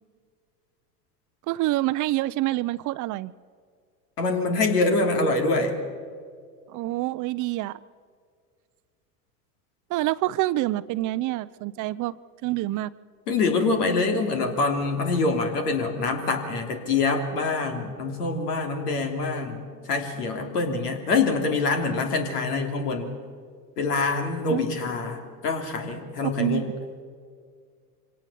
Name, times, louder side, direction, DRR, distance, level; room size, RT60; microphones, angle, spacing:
voice 1, 1.5-3.3 6.7-7.8 9.9-12.1 12.4-12.9 24.5-24.6 26.2-26.6, right 17 dB, 40° right, 17 dB, 0.6 m, -26 dB
voice 2, 4.2-5.7 13.3-23.1 23.8-26.7, left 3 dB, 80° left, 4 dB, 3.3 m, -25 dB
24.5 x 18.0 x 7.0 m, 2.1 s
hypercardioid pair, 90°, 46 cm